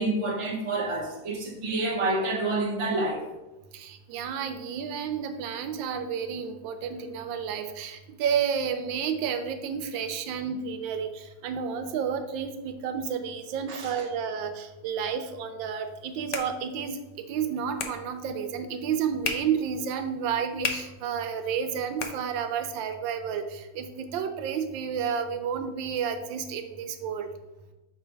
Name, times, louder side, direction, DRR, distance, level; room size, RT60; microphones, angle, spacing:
voice 1, 0.0-3.2 13.7-13.9, right 2 dB, 35° right, 0.5 m, -28 dB
voice 2, 3.7-17.0 17.3-27.3, right 7 dB, 80° right, 1.3 m, -31 dB
sound 1, 15.8-22.8, left 6 dB, 80° left, 0.6 m, -39 dB
6.1 x 3.3 x 4.6 m
omnidirectional pair, 2.1 m